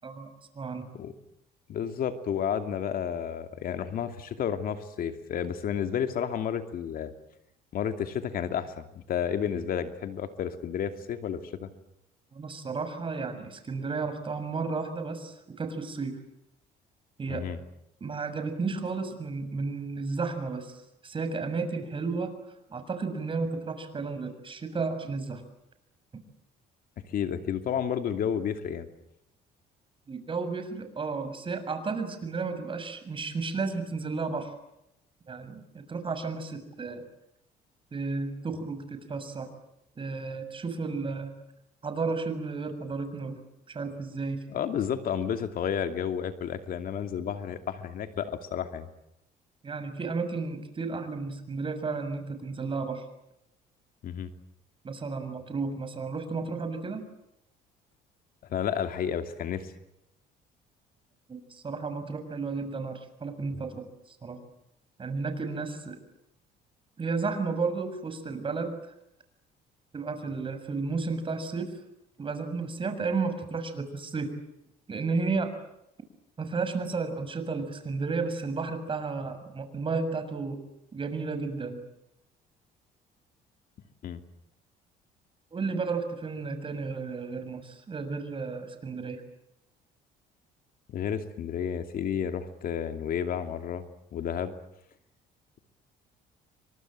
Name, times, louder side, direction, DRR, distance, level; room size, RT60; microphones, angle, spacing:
voice 1, 0.5-0.8 12.3-16.2 17.2-17.5 18.0-20.8 21.0-22.3 22.7-25.4 30.1-34.5 35.3-37.0 37.9-39.5 40.0-41.3 41.8-43.4 43.7-44.4 49.6-53.0 54.8-57.0 61.3-64.4 65.0-66.0 67.0-68.7 69.9-71.7 72.2-74.3 74.9-75.5 76.4-80.6 80.9-81.8 85.5-89.2, right 4 dB, 30° right, 8 dB, 6.7 m, -33 dB
voice 2, 1.7-7.1 7.7-11.7 17.3-17.6 27.1-28.9 44.5-48.9 54.0-54.3 58.5-59.7 84.0-84.2 90.9-94.5, left 8 dB, 60° left, 8 dB, 2.6 m, -31 dB
29.5 x 25.5 x 7.7 m, 0.83 s
cardioid pair, 110°, 17 cm